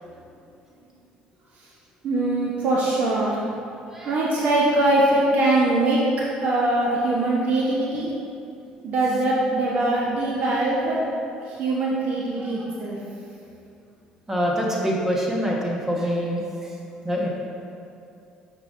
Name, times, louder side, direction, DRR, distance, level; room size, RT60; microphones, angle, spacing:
voice 1, 2.0-3.4 4.0-6.0 6.4-8.1 8.8-11.0 11.5-13.0, right 2 dB, 60° right, -5 dB, 0.9 m, -22 dB
voice 2, 14.3-16.7 17.0-17.3, equal, 15° right, -3 dB, 1.2 m, -25 dB
6.6 x 5.8 x 2.6 m, 2.7 s
cardioid pair, 95°, 3 cm